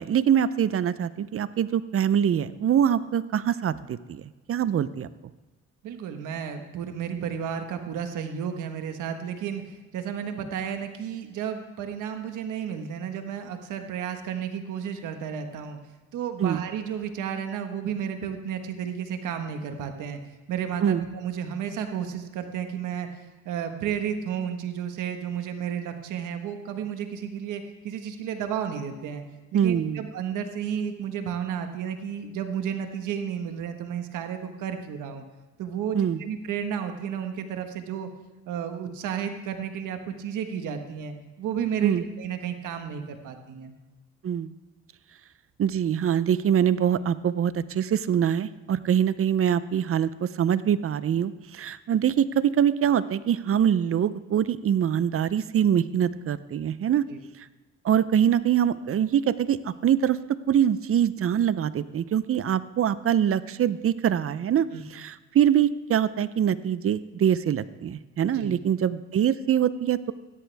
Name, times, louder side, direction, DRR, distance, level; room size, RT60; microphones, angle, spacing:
voice 1, 0.0-5.1 16.4-16.6 20.8-21.0 29.5-30.0 35.9-36.2 41.8-42.0 44.2-44.5 45.6-57.0 57.8-60.2 60.5-64.7 64.9-70.1, right 9 dB, 45° right, 16 dB, 0.6 m, -24 dB
voice 2, 5.8-15.8 16.1-20.2 20.5-29.2 29.5-35.2 35.6-38.1 38.5-43.7 57.1-57.2 64.7-64.8 68.3-68.5, right 8 dB, 85° right, 6 dB, 1.5 m, -32 dB
16.5 x 13.0 x 3.5 m, 1.2 s
cardioid pair, 90°, 30 cm